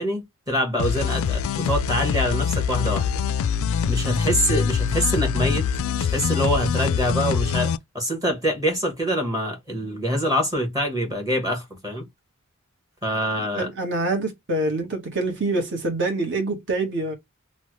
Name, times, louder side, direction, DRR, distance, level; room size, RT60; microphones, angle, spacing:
voice 1, 0.0-3.1 3.9-5.7 6.0-12.1 13.0-13.7, equal, 15° right, 1.0 m, -25 dB
sound 1, 0.8-7.8, left 7 dB, 70° left, 0.3 m, -24 dB
voice 2, 13.5-17.1, right 2 dB, 60° right, 1.2 m, -25 dB
3.1 x 2.1 x 3.0 m
head